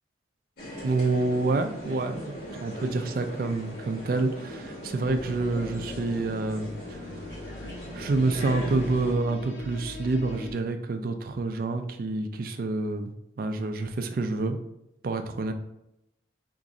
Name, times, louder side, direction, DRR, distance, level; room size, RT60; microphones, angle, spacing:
sound 1, 0.6-9.2, equal, 55° left, 1.3 m, -39 dB
voice 1, 0.8-7.0 7.9-13.1 13.4-14.6 15.0-15.5, right 3 dB, 50° right, 7 dB, 0.3 m, -28 dB
sound 2, 5.0-10.5, left 3 dB, 90° left, 0.9 m, -41 dB
3.0 x 2.6 x 3.7 m, 0.82 s
head